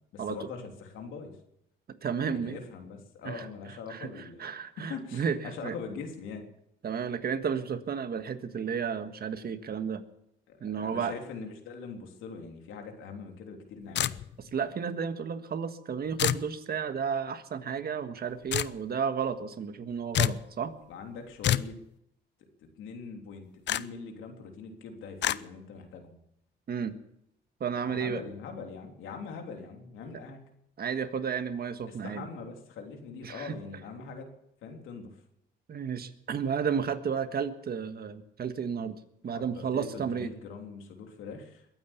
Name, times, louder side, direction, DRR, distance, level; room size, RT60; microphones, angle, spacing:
voice 1, 0.1-1.4 2.2-6.4 10.5-14.2 20.9-21.8 22.6-26.2 27.8-30.4 31.8-34.3 34.6-35.2 39.3-41.7, left 5 dB, 90° left, 3 dB, 3.3 m, -42 dB
voice 2, 2.0-2.6 3.2-3.5 3.9-5.7 6.8-10.0 10.6-11.2 14.5-20.7 26.7-27.0 27.6-28.2 30.8-32.3 33.2-33.6 35.7-39.0 39.2-40.3, right 6 dB, 50° right, 9 dB, 1.6 m, -32 dB
sound 1, 14.0-14.5 16.2-16.5 18.5-18.7 20.1-20.4 21.4-21.7 23.7-23.8 25.2-25.4, left 11 dB, 65° left, 0.6 m, -27 dB
22.0 x 9.1 x 7.2 m, 0.77 s
cardioid pair, 90°, 20 cm